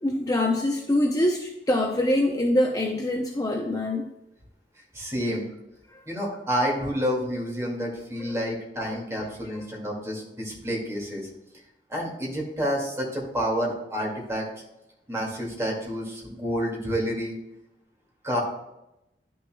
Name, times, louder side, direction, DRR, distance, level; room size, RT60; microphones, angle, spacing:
voice 1, 0.0-4.1 8.3-8.4 8.8-8.9, left 1 dB, 20° left, 1 dB, 0.6 m, -24 dB
voice 2, 4.9-5.5 6.1-11.3 11.9-14.5 15.1-17.4 18.2-18.4, equal, 15° right, -2 dB, 2.2 m, -29 dB
11.0 x 6.2 x 2.3 m, 0.88 s
head